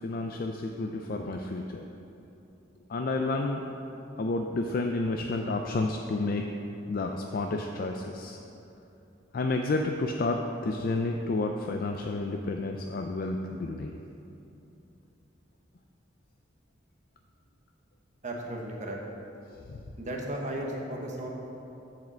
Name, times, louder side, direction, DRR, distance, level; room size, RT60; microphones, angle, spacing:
voice 1, 0.0-1.9 2.9-3.6 4.2-6.5 6.9-8.4 9.3-14.0 19.7-19.8, left 2 dB, 50° left, 3 dB, 0.4 m, -30 dB
voice 2, 18.2-19.0 20.0-21.3, right 1 dB, 40° right, 0 dB, 1.1 m, -35 dB
7.6 x 4.9 x 7.2 m, 2.8 s
head